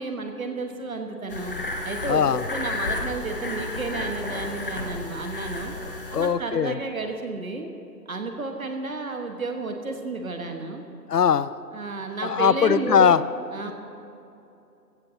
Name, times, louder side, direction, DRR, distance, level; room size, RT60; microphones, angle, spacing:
voice 1, 0.0-1.6 1.8-2.2 2.5-5.7 6.1-7.7 8.1-10.8 11.7-13.1 13.5-13.7, right 3 dB, 55° right, 4 dB, 1.5 m, -32 dB
sound 1, 1.3-6.3, left 2 dB, 35° left, 1.1 m, -32 dB
voice 2, 2.1-2.4 6.1-6.8 11.1-11.5 12.2-13.2 13.7-13.8, left 7 dB, 70° left, 16 dB, 0.7 m, -20 dB
21.5 x 15.5 x 2.8 m, 2.7 s
figure-of-eight pair, 165°, 50 cm